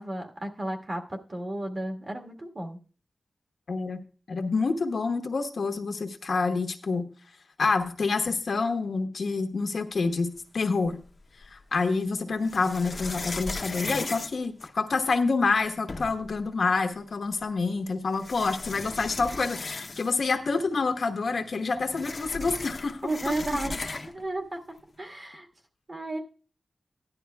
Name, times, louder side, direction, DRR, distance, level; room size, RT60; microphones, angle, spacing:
voice 1, 0.0-2.8 23.0-24.6 25.0-25.5 25.9-26.2, right 1 dB, 40° right, 3 dB, 1.6 m, -33 dB
voice 2, 3.7-4.0 4.3-7.1 7.6-11.0 11.5-23.3, left 4 dB, 70° left, 6 dB, 1.1 m, -27 dB
sound 1, 10.8-11.6 12.4-15.2 15.6-15.7 15.9-16.4 17.4-17.5 18.1-20.3 20.7-20.8 21.0-24.3, left 3 dB, 45° left, 0.8 m, -37 dB
15.5 x 11.0 x 2.3 m, 0.39 s
wide cardioid pair, 100°, 0 cm